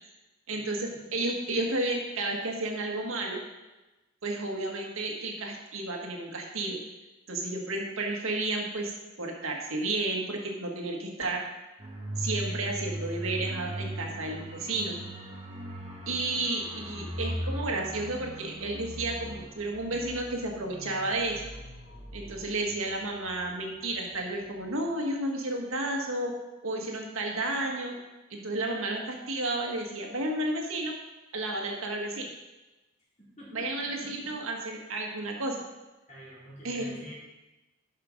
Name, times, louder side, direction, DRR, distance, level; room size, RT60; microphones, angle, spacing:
voice 1, 0.5-3.4 4.2-6.8 7.3-11.4 12.2-15.0 16.1-21.4 22.1-26.3 26.6-28.0 28.3-30.9 31.3-32.3 33.5-35.6 36.6-36.9, right 2 dB, 80° right, 1 dB, 1.7 m, -32 dB
sound 1, 11.8-24.2 24.5-24.6, right 1 dB, 30° right, 1.4 m, -39 dB
voice 2, 33.4-34.3 36.1-37.1, equal, 35° left, -7 dB, 3.9 m, -47 dB
11.5 x 5.6 x 5.1 m, 1.1 s
head